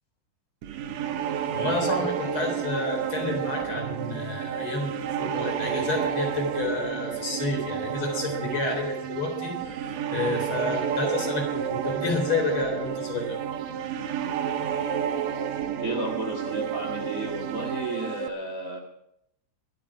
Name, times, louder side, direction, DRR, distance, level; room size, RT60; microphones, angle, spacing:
sound 1, 0.6-18.3, right 8 dB, 65° right, 2.1 m, -30 dB
voice 1, 1.5-4.9 5.2-13.4, left 2 dB, 40° left, 2 dB, 4.5 m, -30 dB
voice 2, 15.8-18.8, right 2 dB, 30° right, 3 dB, 1.8 m, -32 dB
24.0 x 9.2 x 5.0 m, 0.76 s
omnidirectional pair, 3.7 m